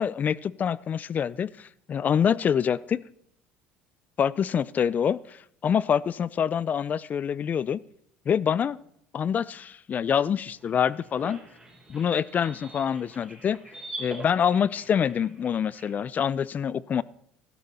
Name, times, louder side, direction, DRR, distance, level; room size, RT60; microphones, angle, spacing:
voice 1, 0.0-3.0 4.2-7.8 8.3-8.8 9.1-11.4 11.9-13.6 14.0-17.0, left 8 dB, 35° left, 0.4 m, -26 dB
sound 1, 10.5-16.0, right 2 dB, 10° right, 4.1 m, -44 dB
12.5 x 12.5 x 4.2 m
supercardioid pair, 100°, 5 cm